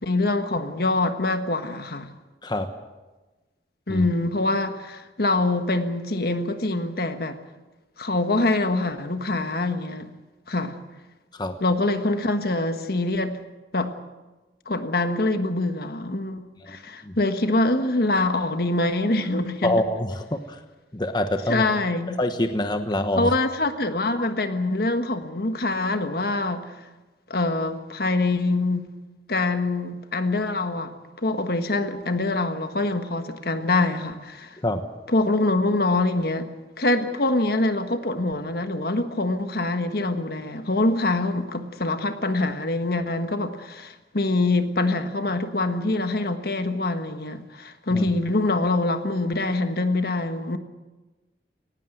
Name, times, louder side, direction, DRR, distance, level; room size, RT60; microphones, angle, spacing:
voice 1, 0.0-2.1 3.9-7.4 8.0-10.1 10.5-10.8 11.6-13.4 13.7-13.9 14.7-19.8 21.5-22.2 23.2-26.7 27.3-28.9 29.3-30.9 31.2-34.6 35.1-36.5 36.8-50.6, left 2 dB, 60° left, 8 dB, 1.5 m, -24 dB
voice 2, 19.6-20.6 20.9-21.6 22.2-23.3 24.1-24.3 34.6-34.8 47.9-48.1, left 1 dB, 25° left, 7 dB, 1.1 m, -25 dB
19.0 x 17.5 x 9.2 m, 1.2 s
head